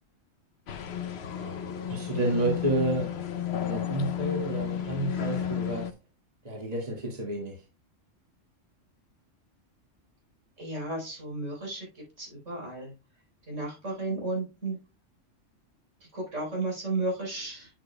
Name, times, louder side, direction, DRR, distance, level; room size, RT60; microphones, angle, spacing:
sound 1, 0.7-5.9, left 9 dB, 60° left, 0.9 m, -33 dB
voice 1, 1.9-3.2 3.7-5.9 6.4-7.6, right 1 dB, 30° right, 0 dB, 2.0 m, -30 dB
voice 2, 10.6-11.9 12.2-12.9 13.5-14.8 16.1-17.7, right 2 dB, 70° right, -2 dB, 4.5 m, -33 dB
10.0 x 6.9 x 2.3 m, 0.27 s
omnidirectional pair, 1.3 m